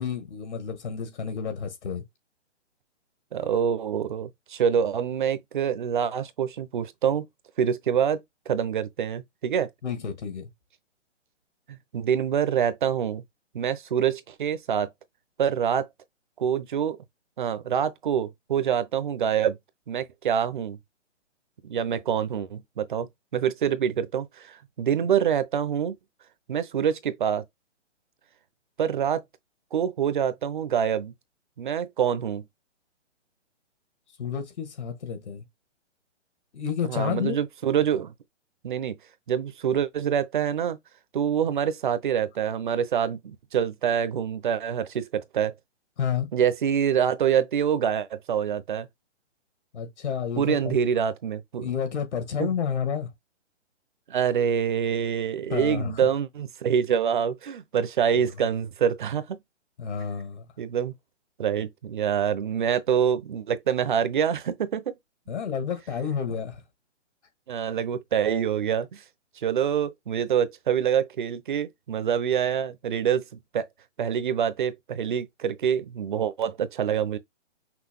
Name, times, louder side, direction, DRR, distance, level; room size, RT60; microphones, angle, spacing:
voice 1, 0.0-2.0 9.8-10.5 34.2-35.5 36.5-37.4 46.0-46.3 49.7-50.8 51.6-53.1 55.5-55.9 58.1-58.3 59.8-60.5 65.3-66.6, left 7 dB, 65° left, 1.7 m, -30 dB
voice 2, 3.3-7.3 7.6-9.7 11.7-13.2 13.5-14.9 15.4-15.9 16.4-17.0 17.4-19.6 19.9-20.8 21.6-25.9 26.5-27.4 28.8-29.2 29.7-31.1 31.6-32.4 36.8-38.1 38.6-39.0 39.3-40.8 41.1-45.5 46.3-48.9 50.4-51.7 52.4-52.5 54.1-59.4 60.6-60.9 61.4-65.0 67.5-69.0 69.4-73.2 73.5-73.7 74.0-77.2, right 8 dB, 45° right, 0.7 m, -26 dB
6.0 x 2.2 x 3.6 m
hypercardioid pair, 165°, 36 cm